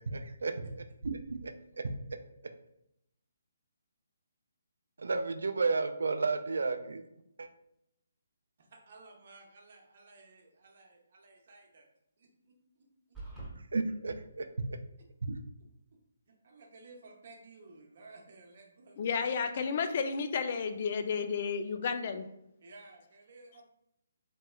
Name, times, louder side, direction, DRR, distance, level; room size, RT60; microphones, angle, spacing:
voice 1, 0.0-1.5 5.0-7.0 7.4-7.5 13.5-14.5 15.2-15.4, right 3 dB, 75° right, 8 dB, 0.3 m, -33 dB
voice 2, 8.6-11.8 12.2-12.9 16.3-18.9 22.6-23.7, right 3 dB, 55° right, 1 dB, 0.7 m, -55 dB
sound 1, 13.1-13.5, right 2 dB, ahead, 0.9 m, -42 dB
voice 3, 19.0-22.3, left 5 dB, 45° left, 8 dB, 0.3 m, -32 dB
3.0 x 2.9 x 2.3 m, 0.79 s
hypercardioid pair, 150°, 0 cm